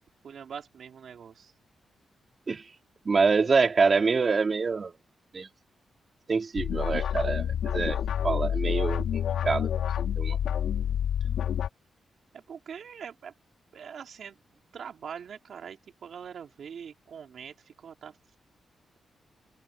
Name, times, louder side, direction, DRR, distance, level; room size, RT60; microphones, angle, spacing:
voice 1, 0.2-1.5 12.3-13.3 13.7-14.3 14.7-18.1, right 7 dB, 70° right, 2.8 m, -43 dB
voice 2, 3.1-4.9 5.3-5.5 6.3-9.1 9.4-9.7 10.2-10.4 11.3-11.4, right 4 dB, 40° right, 3.5 m, -25 dB
sound 1, 6.6-11.7, left 9 dB, 85° left, 3.9 m, -28 dB
cardioid pair, 90°, 0 cm